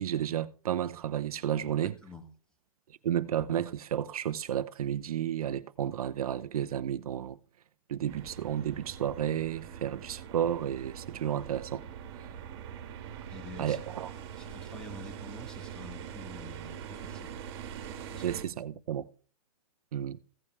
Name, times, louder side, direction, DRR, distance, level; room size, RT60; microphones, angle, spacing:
voice 1, 0.0-1.9 3.0-7.4 7.9-11.8 13.6-14.1 18.2-19.1 19.9-20.2, right 10 dB, 75° right, 0.8 m, -32 dB
voice 2, 1.6-2.3 13.3-13.8 14.4-17.3 18.1-18.4, left 2 dB, 5° left, 1.6 m, -48 dB
sound 1, 8.1-18.4, right 8 dB, 40° right, 2.0 m, -43 dB
16.0 x 5.5 x 4.7 m
hypercardioid pair, 165°, 19 cm